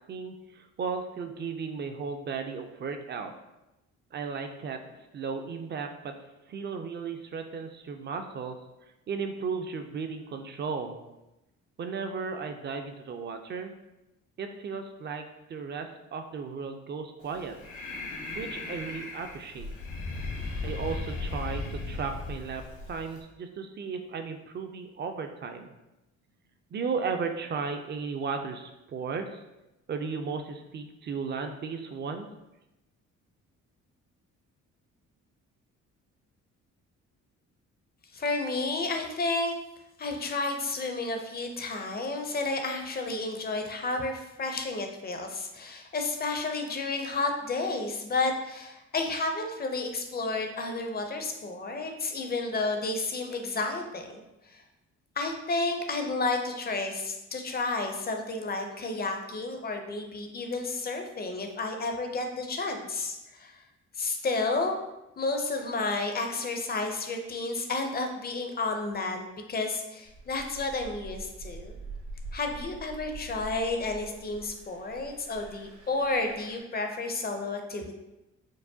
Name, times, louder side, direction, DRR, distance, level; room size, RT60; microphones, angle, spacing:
voice 1, 0.1-3.3 4.1-4.8 5.1-6.1 6.5-8.6 9.1-11.0 11.8-13.7 14.4-17.6 18.3-19.7 20.6-25.7 26.7-29.4 29.9-32.3, right 5 dB, 35° right, 6 dB, 0.4 m, -35 dB
Breathing, 17.2-23.2, left 3 dB, 70° left, 1.0 m, -37 dB
voice 2, 38.1-39.5 40.0-54.6 55.2-63.6 63.9-64.8 65.2-71.7 72.3-77.9, left 3 dB, 30° left, 4 dB, 0.5 m, -31 dB
Engine, 70.0-76.6, right 3 dB, 85° right, 0.7 m, -45 dB
4.6 x 2.1 x 2.7 m, 0.96 s
cardioid pair, 90°, 30 cm